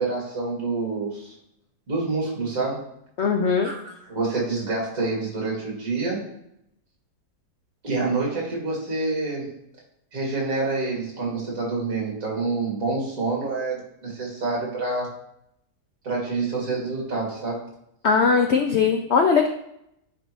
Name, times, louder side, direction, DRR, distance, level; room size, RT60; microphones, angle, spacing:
voice 1, 0.0-1.3 1.9-2.8 3.6-6.2 7.8-9.5 10.1-15.1 16.0-17.6, right 3 dB, 55° right, -4 dB, 2.5 m, -27 dB
voice 2, 3.2-3.7 18.0-19.5, left 5 dB, 80° left, 4 dB, 0.6 m, -20 dB
9.5 x 3.4 x 3.1 m, 0.76 s
omnidirectional pair, 1.8 m